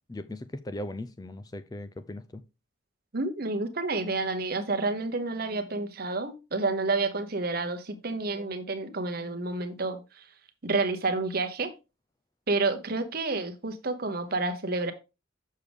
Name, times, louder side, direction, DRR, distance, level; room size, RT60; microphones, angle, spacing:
voice 1, 0.1-2.4, left 1 dB, 20° left, 0.3 m, -38 dB
voice 2, 3.1-10.2 10.6-11.7 12.5-14.9, right 3 dB, 50° right, 1.0 m, -29 dB
6.6 x 6.4 x 3.5 m
head